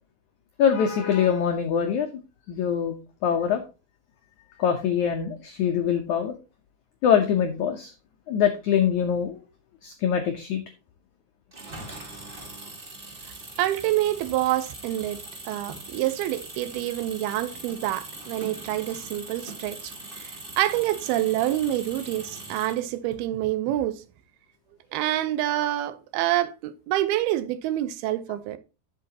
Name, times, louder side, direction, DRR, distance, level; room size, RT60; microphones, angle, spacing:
voice 1, 0.6-2.1 2.5-3.0 3.2-3.6 4.6-6.3 7.0-7.9 8.3-9.4 9.8-10.6, left 8 dB, 80° left, 1.7 m, -23 dB
Engine, 11.5-23.1, right 2 dB, 55° right, 0.5 m, -41 dB
voice 2, 13.6-15.2 15.5-24.0 24.9-28.6, right 14 dB, 80° right, 2.5 m, -27 dB
11.0 x 7.5 x 2.8 m
omnidirectional pair, 4.7 m